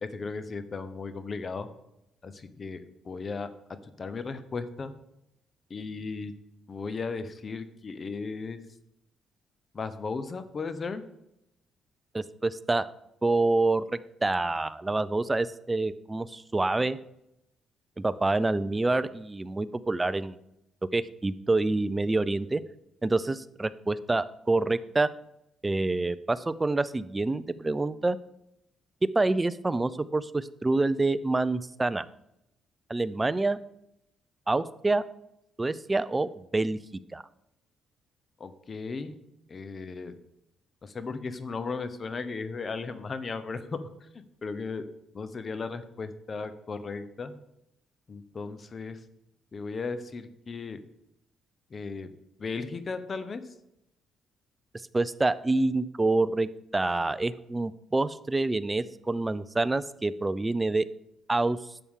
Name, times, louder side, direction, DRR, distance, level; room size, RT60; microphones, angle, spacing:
voice 1, 0.0-1.7 2.2-3.5 4.0-4.9 5.7-6.3 6.7-8.6 9.7-11.0 38.4-39.2 39.5-40.1 40.8-44.9 45.1-47.3 48.1-49.0 49.5-50.8 51.7-52.1 52.4-53.4, left 4 dB, 40° left, 11 dB, 0.9 m, -36 dB
voice 2, 12.1-12.9 13.2-17.0 18.0-20.4 20.9-22.6 23.0-25.1 25.6-28.2 29.1-32.1 32.9-33.6 34.5-35.0 35.6-36.8 37.1-37.2 54.9-60.9 61.3-61.6, right 2 dB, 20° right, 15 dB, 0.4 m, -27 dB
11.0 x 6.9 x 3.7 m, 0.84 s
cardioid pair, 90°, 0 cm